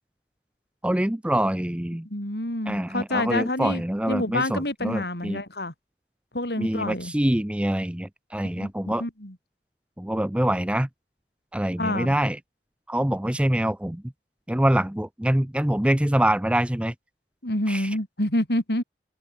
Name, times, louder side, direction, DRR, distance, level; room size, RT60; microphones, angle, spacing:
voice 1, 0.8-2.1 2.7-5.4 6.6-9.0 10.0-10.9 11.5-12.4 12.9-14.0 14.5-16.9 17.7-17.9, right 1 dB, 5° right, 0.5 m, -25 dB
voice 2, 2.1-5.7 6.3-7.1 8.6-8.7 9.0-9.3 11.8-12.2 17.4-18.8, left 1 dB, 65° left, 4.7 m, -27 dB
head